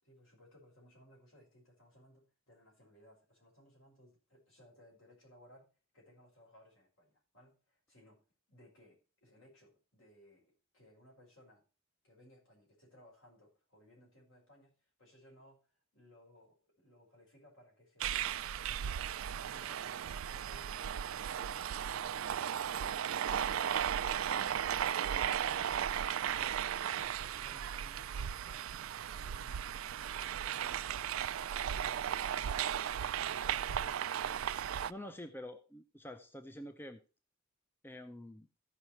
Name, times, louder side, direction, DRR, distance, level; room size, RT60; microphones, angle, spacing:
voice 1, 0.0-8.2 8.5-11.6 12.0-19.1 19.5-26.5 26.9-28.7 29.1-32.9 33.5-34.4, equal, 70° left, -1 dB, 5.2 m, -63 dB
sound 1, 18.0-34.9, right 9 dB, 75° right, 0.4 m, -36 dB
voice 2, 34.9-37.0 37.8-38.5, left 1 dB, 10° left, 8 dB, 0.5 m, -47 dB
14.5 x 5.7 x 4.4 m, 0.33 s
head